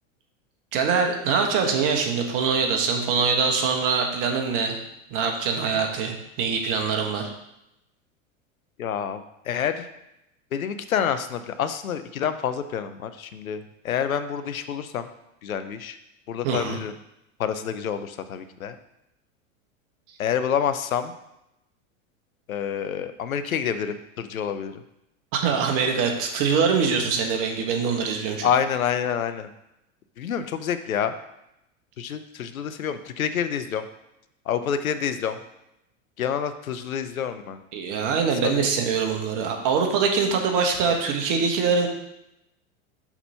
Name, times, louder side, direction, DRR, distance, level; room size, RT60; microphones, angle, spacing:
voice 1, 0.7-4.8 5.1-7.3 16.4-16.8 25.4-28.5 37.7-41.9, right 5 dB, 50° right, 3 dB, 1.4 m, -23 dB
voice 2, 8.8-9.9 10.5-15.1 15.4-16.0 16.3-16.9 17.4-18.8 20.2-21.1 22.5-24.7 28.4-29.5 30.2-31.1 32.0-33.8 34.5-35.4 36.2-37.6 38.5-38.7, left 8 dB, 90° left, 10 dB, 0.7 m, -28 dB
5.9 x 4.1 x 5.5 m, 0.85 s
hypercardioid pair, 90°, 40 cm